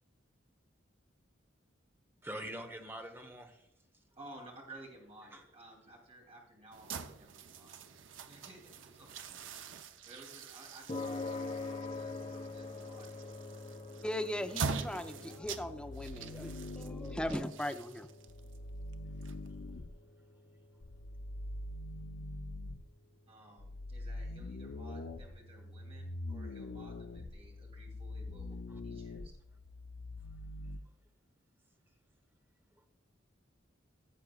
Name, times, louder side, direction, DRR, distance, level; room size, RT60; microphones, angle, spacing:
voice 1, 2.2-3.6 5.3-5.4 28.7-28.8, right 1 dB, 10° right, 5 dB, 0.9 m, -44 dB
voice 2, 4.1-7.7 8.3-9.7 10.0-13.3 23.3-28.6 28.8-29.4, right 1 dB, 30° right, -1 dB, 2.8 m, -55 dB
sound 1, 6.7-19.8, right 5 dB, 75° right, 0.7 m, -44 dB
sound 2, 10.9-27.4, left 3 dB, 30° left, 0.8 m, -47 dB
voice 3, 14.0-18.1, left 1 dB, 5° left, 6 dB, 0.5 m, -38 dB
sound 3, 15.4-17.4 18.3-19.9 20.8-22.9 23.6-30.8, left 2 dB, 85° left, 0.6 m, -44 dB
16.5 x 7.5 x 2.3 m, 0.86 s
head